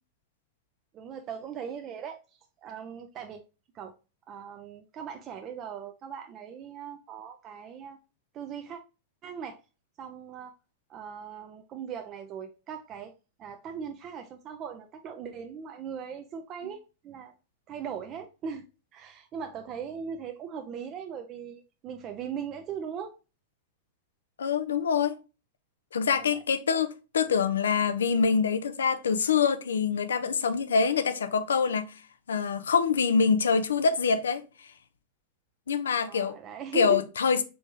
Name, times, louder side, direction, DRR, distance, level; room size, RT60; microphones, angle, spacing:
voice 1, 0.9-2.2 2.6-3.4 3.7-4.0 4.3-8.0 8.3-8.8 9.2-9.6 10.0-10.5 10.9-13.1 13.4-17.3 17.7-18.7 18.9-23.2 26.1-26.4 27.2-27.3 36.0-37.0, right 7 dB, 35° right, 0.5 m, -39 dB
voice 2, 24.4-25.2 25.9-31.9 32.3-34.4 35.7-36.4 36.7-37.4, left 6 dB, 85° left, 0.5 m, -25 dB
4.5 x 3.5 x 2.5 m
hypercardioid pair, 110°, 0 cm